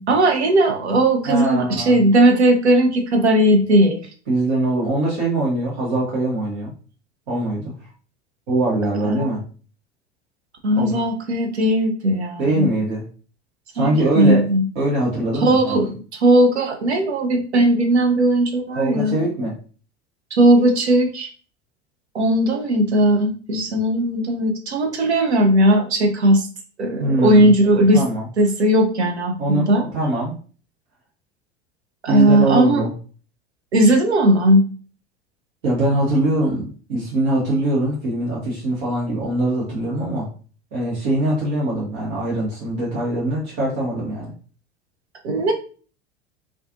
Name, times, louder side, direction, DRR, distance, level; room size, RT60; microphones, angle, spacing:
voice 1, 0.0-4.0 9.0-9.3 10.6-12.7 13.8-14.6 15.4-19.1 20.3-21.3 22.1-26.5 26.8-28.0 28.4-29.8 32.0-32.8 33.7-34.6 45.2-45.5, right 1 dB, 85° right, 3 dB, 0.6 m, -17 dB
voice 2, 1.3-2.0 4.3-6.7 7.3-7.7 8.5-9.4 10.8-11.0 12.4-13.0 13.7-14.4 14.7-15.8 18.7-19.5 27.0-27.5 27.9-28.3 29.4-29.7 29.9-30.3 32.1-32.9 35.6-40.3 40.7-44.3, right 1 dB, 65° right, -6 dB, 1.0 m, -22 dB
2.4 x 2.4 x 2.5 m, 0.40 s
figure-of-eight pair, 75°, 32 cm